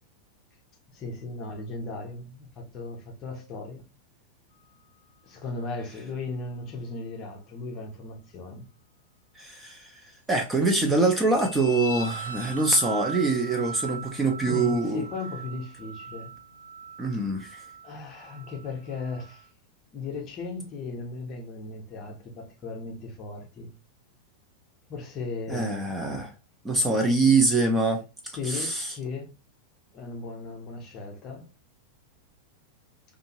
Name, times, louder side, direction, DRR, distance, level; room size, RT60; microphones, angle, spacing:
voice 1, 0.9-3.8 5.2-8.7 14.5-16.3 17.8-19.5 19.9-23.7 24.9-26.0 28.4-29.3 29.9-31.5, left 3 dB, 35° left, 0.8 m, -36 dB
voice 2, 9.4-9.9 10.3-15.0 17.0-17.6 25.5-26.3 26.6-28.0 28.4-28.9, right 3 dB, 10° right, 0.6 m, -24 dB
sound 1, 10.6-19.5, right 3 dB, 80° left, 0.3 m, -40 dB
2.6 x 2.5 x 2.9 m
figure-of-eight pair, 90°, 0 cm